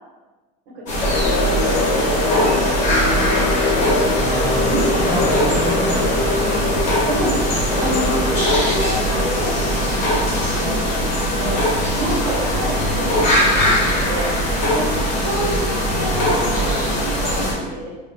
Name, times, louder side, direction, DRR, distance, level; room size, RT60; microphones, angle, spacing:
sound 1, 0.9-17.5, equal, 35° left, 0.9 m, -20 dB
sound 2, 1.0-11.1, left 3 dB, 70° left, 0.4 m, -24 dB
voice 1, 1.4-4.1 4.6-5.2 7.1-7.4 7.8-11.1 11.4-14.3 14.7-14.9 15.2-15.6 15.9-17.9, right 1 dB, 85° right, -3 dB, 0.9 m, -28 dB
voice 2, 4.2-6.7 14.6-14.8, equal, 15° right, -5 dB, 0.7 m, -28 dB
3.4 x 2.1 x 2.6 m, 1.2 s
cardioid pair, 155°, 21 cm